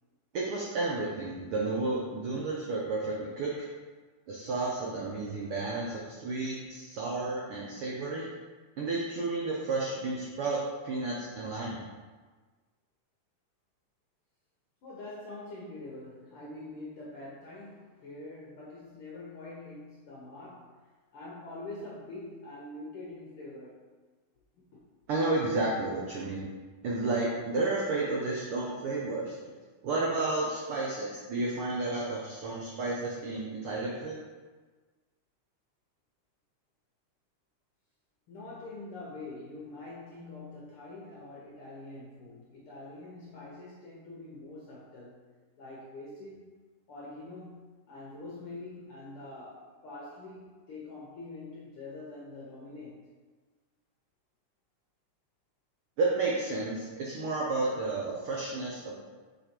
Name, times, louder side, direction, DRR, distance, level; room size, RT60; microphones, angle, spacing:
voice 1, 0.3-3.7 4.3-8.2 8.8-11.8 25.1-26.5 26.8-29.4 29.8-34.2 56.0-59.0, right 3 dB, 80° right, -4 dB, 1.2 m, -32 dB
voice 2, 14.8-20.8 21.1-23.8 24.5-24.8 38.3-45.2 45.6-46.5 46.9-53.0, left 2 dB, 70° left, -5 dB, 1.3 m, -45 dB
5.6 x 4.1 x 4.4 m, 1.4 s
omnidirectional pair, 3.5 m